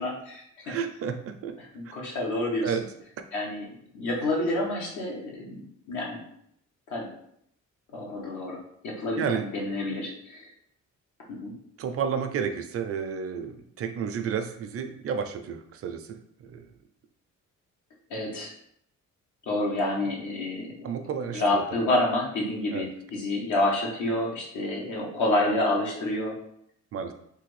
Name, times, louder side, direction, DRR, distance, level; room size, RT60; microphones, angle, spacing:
voice 1, 0.0-0.7 1.6-2.8 3.3-3.7 3.9-5.6 5.9-6.2 6.9-7.1 7.9-8.6 8.8-10.5 11.3-11.5 18.1-18.5 19.5-20.7 21.3-26.3, left 1 dB, 75° left, -2 dB, 1.1 m, -28 dB
voice 2, 0.7-1.6 2.6-2.8 9.2-9.4 11.8-16.2 16.4-16.6 20.8-21.6 22.7-22.9 26.9-27.1, right 7 dB, 50° right, 8 dB, 0.4 m, -31 dB
3.3 x 2.3 x 3.1 m, 0.72 s
cardioid pair, 90°, 30 cm